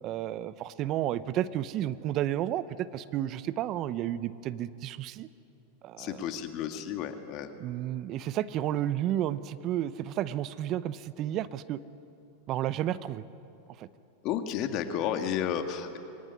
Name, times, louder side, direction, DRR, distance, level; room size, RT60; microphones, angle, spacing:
voice 1, 0.0-2.6 2.9-5.3 5.8-6.2 7.6-11.8 12.5-13.2 13.8-13.9, right 12 dB, 45° right, 15 dB, 0.8 m, -32 dB
voice 2, 6.0-7.5 14.2-16.0, left 9 dB, 50° left, 6 dB, 2.2 m, -32 dB
24.0 x 18.5 x 9.9 m, 2.7 s
hypercardioid pair, 100°, 0 cm